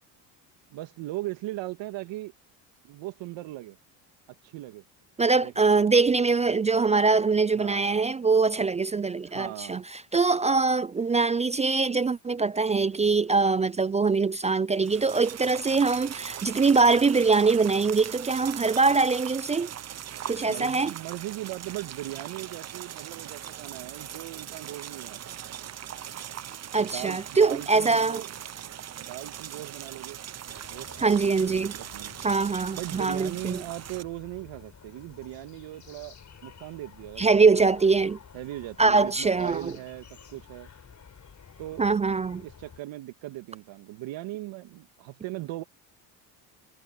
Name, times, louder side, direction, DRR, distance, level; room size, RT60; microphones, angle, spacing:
voice 1, 0.7-2.3 2.8-3.8 4.4-4.8 5.4-5.9 7.5-8.1 9.3-9.8 20.4-25.3 26.8-28.3 29.0-30.2 30.7-32.1 32.8-36.1 36.4-37.9 38.3-40.7 41.6-41.8 42.4-45.6, right 17 dB, 65° right, 2.2 m, -39 dB
voice 2, 5.2-19.7 20.3-20.9 26.7-28.2 31.0-31.7 32.2-33.6 37.2-38.2 38.8-39.7 41.8-42.4, right 4 dB, 15° right, 0.3 m, -23 dB
sound 1, 14.7-34.0, right 10 dB, 35° right, 0.8 m, -40 dB
sound 2, 30.5-42.8, left 7 dB, 35° left, 4.4 m, -51 dB
supercardioid pair, 75°, 48 cm